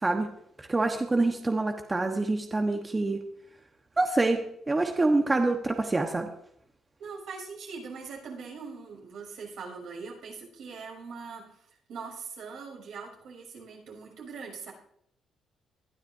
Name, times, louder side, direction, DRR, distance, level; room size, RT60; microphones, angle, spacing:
voice 1, 0.6-3.2 4.0-6.3, right 2 dB, 20° right, 3 dB, 1.2 m, -26 dB
voice 2, 7.0-14.7, right 5 dB, 80° right, -2 dB, 6.4 m, -42 dB
20.5 x 12.0 x 2.7 m, 0.71 s
cardioid pair, 90°, 0 cm